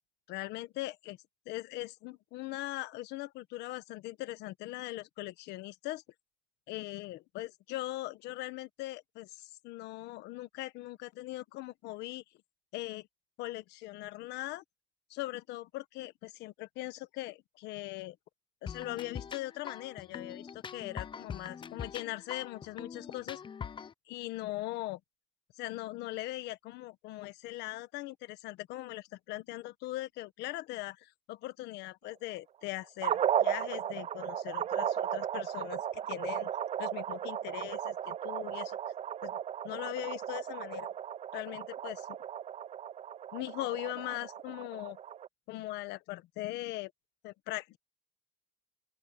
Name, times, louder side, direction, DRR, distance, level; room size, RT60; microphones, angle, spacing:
voice 1, 0.3-1.2 1.5-6.0 6.7-12.2 12.7-13.1 13.4-14.6 15.1-18.2 18.6-23.4 24.1-25.0 25.6-36.5 36.8-38.8 39.2-39.4 39.6-40.9 41.3-42.1 43.3-45.0 45.5-46.9 47.2-47.8, left 17 dB, 90° left, 1.3 m, -40 dB
sound 1, 18.7-23.9, left 7 dB, 30° left, 0.6 m, -43 dB
sound 2, 33.0-45.3, right 10 dB, 40° right, 0.4 m, -35 dB
open air
cardioid pair, 110°, 17 cm